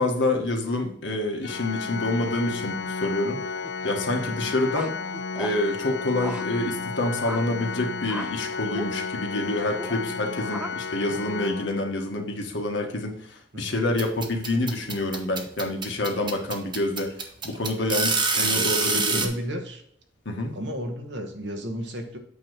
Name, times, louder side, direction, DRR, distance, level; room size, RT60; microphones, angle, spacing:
voice 1, 0.0-3.4 3.8-4.9 5.4-17.1 17.4-19.2 20.2-20.5, left 2 dB, 85° left, 3 dB, 1.3 m, -27 dB
Organ, 1.4-12.3, left 5 dB, 65° left, 0.4 m, -33 dB
sound 1, 3.6-3.9 4.7-5.6 6.2-6.4 7.0-7.4 8.1-8.3 8.7-8.9 9.7-10.0 10.4-10.7 11.1-11.6, right 1 dB, 5° right, 0.5 m, -36 dB
sound 2, 14.0-19.3, right 4 dB, 25° right, 0.8 m, -25 dB
voice 2, 18.3-19.8 20.5-22.2, equal, 75° right, 4 dB, 1.2 m, -33 dB
8.5 x 3.0 x 6.3 m, 0.69 s
head